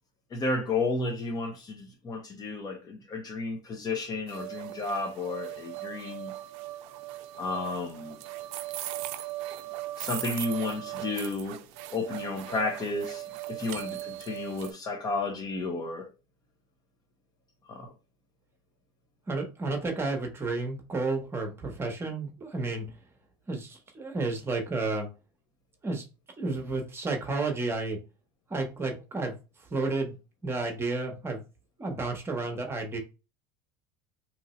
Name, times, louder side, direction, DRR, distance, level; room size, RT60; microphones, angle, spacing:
voice 1, 0.3-6.3 7.4-8.2 10.0-11.6 11.9-13.2 13.5-16.1 17.7-17.9, left 3 dB, 35° left, 0.7 m, -32 dB
sound 1, 4.3-14.7, right 15 dB, 70° right, 0.4 m, -39 dB
voice 2, 19.3-22.9 23.5-25.1 25.8-26.0 26.4-28.0 28.5-29.3 29.7-30.1 30.4-31.4 31.8-33.0, right 3 dB, 20° right, 1.0 m, -31 dB
3.0 x 2.6 x 4.2 m
supercardioid pair, 115°, 12 cm